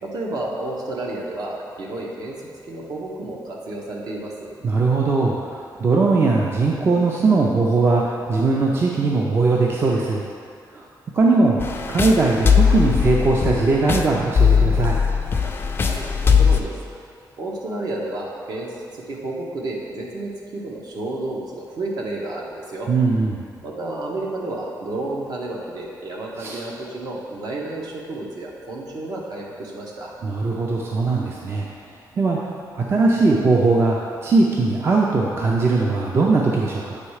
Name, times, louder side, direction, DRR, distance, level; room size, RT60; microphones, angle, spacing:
voice 1, 0.0-2.4 2.7-4.5 15.4-15.5 15.8-16.8 17.4-22.9 23.6-30.1, right 2 dB, 60° right, -2 dB, 1.0 m, -31 dB
voice 2, 4.6-8.0 8.3-10.2 10.7-10.8 11.1-11.6 11.9-15.0 22.9-23.4 26.4-26.6 30.2-31.7 32.2-32.4 32.7-34.0 34.2-37.0, right 3 dB, 35° right, -2 dB, 0.5 m, -19 dB
sound 1, 11.6-16.6, left 6 dB, 30° left, 0.4 m, -19 dB
8.1 x 3.2 x 4.7 m, 2.3 s
wide cardioid pair, 160°, 7 cm